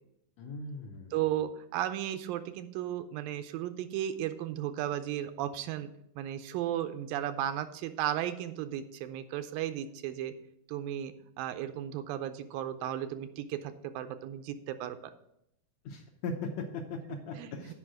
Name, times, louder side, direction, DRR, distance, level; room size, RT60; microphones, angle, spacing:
voice 1, 0.4-1.2 15.9-17.0 17.3-17.7, left 3 dB, 70° left, 3 dB, 1.8 m, -39 dB
voice 2, 1.1-5.9 6.2-10.3 10.7-15.0 17.1-17.7, right 11 dB, 85° right, 10 dB, 2.4 m, -35 dB
8.3 x 5.2 x 7.5 m, 0.76 s
omnidirectional pair, 3.9 m